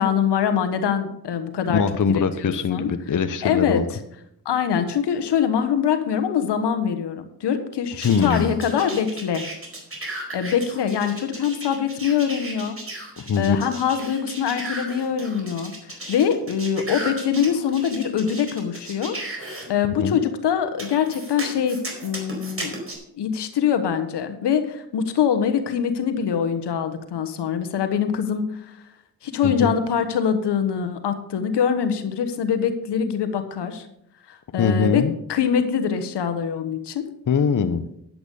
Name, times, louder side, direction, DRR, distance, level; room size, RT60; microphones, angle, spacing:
voice 1, 0.0-1.8 2.1-2.9 3.4-3.8 4.4-9.4 10.3-12.8 13.4-22.7 23.2-28.5 29.2-33.9 34.3-35.0 35.3-37.1, left 7 dB, 85° left, 8 dB, 1.3 m, -24 dB
voice 2, 1.7-3.8 8.0-8.5 13.3-13.6 20.0-20.2 29.4-29.7 34.6-35.1 37.3-37.8, left 6 dB, 50° left, 10 dB, 0.9 m, -22 dB
sound 1, 8.0-19.6 20.8-22.9, right 1 dB, 35° right, 4.4 m, -35 dB
10.5 x 8.0 x 5.4 m, 0.75 s
cardioid pair, 50°, 40 cm